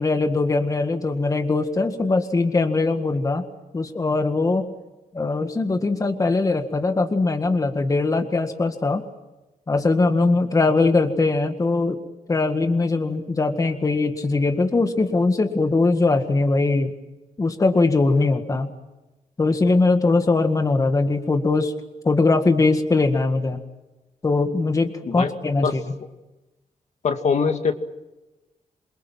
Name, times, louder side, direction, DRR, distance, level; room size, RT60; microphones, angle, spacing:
voice 1, 0.0-3.5 3.7-4.7 5.1-9.0 9.7-12.0 12.3-16.9 17.4-18.7 19.4-21.7 22.0-23.6 24.2-25.8, left 3 dB, 25° left, 6 dB, 1.8 m, -21 dB
voice 2, 27.0-27.7, left 5 dB, 55° left, 7 dB, 2.1 m, -22 dB
27.5 x 24.0 x 7.6 m, 1.0 s
wide cardioid pair, 170°, 14 cm